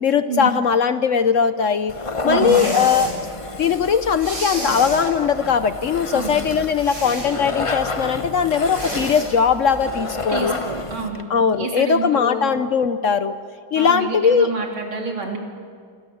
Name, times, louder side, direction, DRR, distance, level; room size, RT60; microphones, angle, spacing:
voice 1, 0.0-1.9 2.2-3.1 3.6-10.5 11.3-13.3 13.7-14.5, left 6 dB, 60° left, 11 dB, 0.8 m, -19 dB
sound 1, 1.9-11.2, left 3 dB, 30° left, 0.6 m, -30 dB
voice 2, 2.2-2.7 6.1-6.4 10.3-11.2 11.5-12.5 13.8-15.4, right 4 dB, 85° right, 1 dB, 4.2 m, -28 dB
sound 2, 2.4-3.1 4.2-5.1 6.8-7.3 8.7-9.3, right 1 dB, 60° right, 7.0 m, -30 dB
27.0 x 26.0 x 7.1 m, 2.1 s
omnidirectional pair, 2.2 m